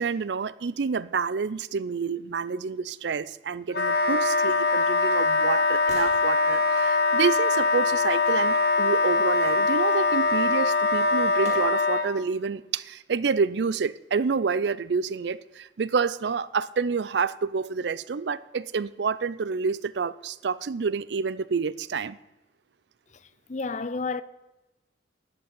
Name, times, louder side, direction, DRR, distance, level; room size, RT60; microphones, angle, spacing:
voice 1, 0.0-22.2, right 5 dB, 65° right, 0.5 m, -28 dB
Wind instrument woodwind instrument, 3.7-12.1, left 3 dB, 60° left, 1.1 m, -23 dB
sound 1, 4.6-8.4 10.5-10.6 11.4-12.1 12.6-12.7, right 1 dB, 40° right, 3.6 m, -48 dB
voice 2, 23.5-24.2, left 4 dB, 40° left, 0.6 m, -30 dB
11.5 x 7.1 x 9.2 m
head